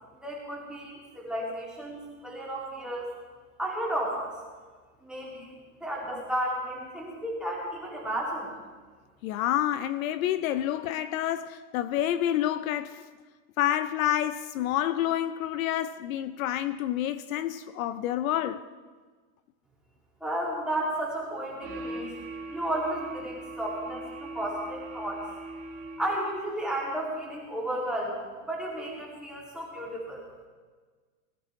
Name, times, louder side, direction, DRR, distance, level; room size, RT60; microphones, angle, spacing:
voice 1, 0.2-3.1 3.6-4.3 5.0-5.5 5.8-8.5 20.2-22.1 22.5-25.2 26.0-28.2 28.5-30.2, right 1 dB, ahead, 2.6 m, -33 dB
voice 2, 9.2-13.0 13.6-18.6, left 12 dB, 70° left, 0.6 m, -28 dB
sound 1, 21.6-26.4, right 1 dB, 20° right, 0.6 m, -40 dB
19.0 x 13.5 x 3.2 m
supercardioid pair, 180°, 43 cm